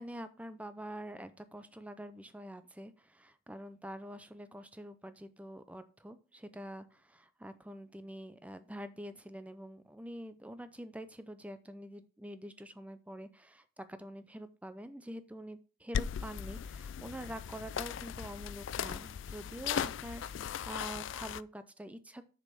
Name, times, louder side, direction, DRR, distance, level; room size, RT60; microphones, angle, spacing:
voice 1, 0.0-22.3, equal, 5° right, 12 dB, 0.5 m, -46 dB
sound 1, 15.9-21.4, left 8 dB, 65° left, 0.3 m, -38 dB
6.6 x 5.2 x 6.8 m, 0.37 s
head